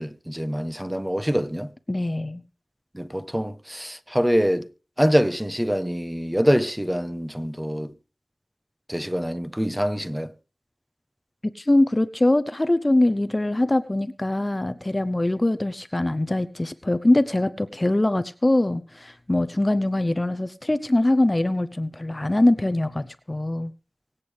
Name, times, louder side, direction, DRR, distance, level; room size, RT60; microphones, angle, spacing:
voice 1, 0.0-1.7 2.9-4.7 5.0-7.9 8.9-10.3, equal, 10° right, 1.0 m, -25 dB
voice 2, 1.9-2.4 11.5-23.7, left 1 dB, 30° left, 0.7 m, -22 dB
24.5 x 8.3 x 3.4 m
wide cardioid pair, 65°, 0 cm